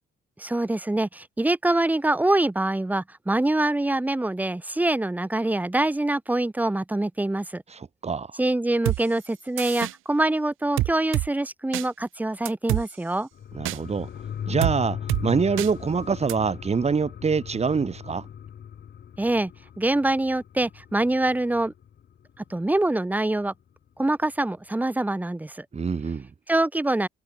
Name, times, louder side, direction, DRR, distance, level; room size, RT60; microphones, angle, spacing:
voice 1, 0.4-7.6 8.4-13.3 19.2-19.5 19.8-21.7 22.5-23.5 24.0-25.6 26.5-27.1, right 2 dB, 10° right, 0.9 m, -24 dB
voice 2, 7.7-8.3 13.5-14.1 14.5-18.3 25.7-26.3, right 5 dB, 30° right, 2.0 m, -25 dB
sound 1, 8.9-9.0 9.6-9.9 10.8-11.3 11.7-11.9 12.5-12.8 13.7-13.8 14.6-14.8 15.1-15.2 15.6-15.7 16.3-16.4, right 17 dB, 90° right, 0.9 m, -25 dB
sound 2, 13.3-22.4 22.8-22.9, left 9 dB, 60° left, 3.5 m, -38 dB
cardioid pair, 90°, 20 cm